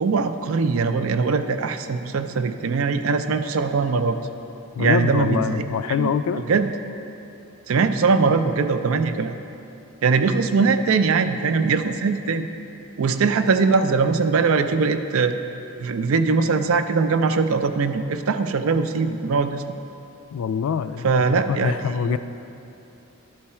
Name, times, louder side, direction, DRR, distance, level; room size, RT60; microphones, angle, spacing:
voice 1, 0.0-4.2 4.8-6.1 6.5-6.7 7.7-9.3 10.0-12.5 13.0-15.3 15.8-19.6 21.0-21.7 22.0-22.2, right 4 dB, 70° right, 9 dB, 0.4 m, -21 dB
voice 2, 4.8-6.4 20.3-22.2, left 7 dB, 80° left, 13 dB, 0.3 m, -25 dB
11.5 x 4.7 x 4.3 m, 2.8 s
head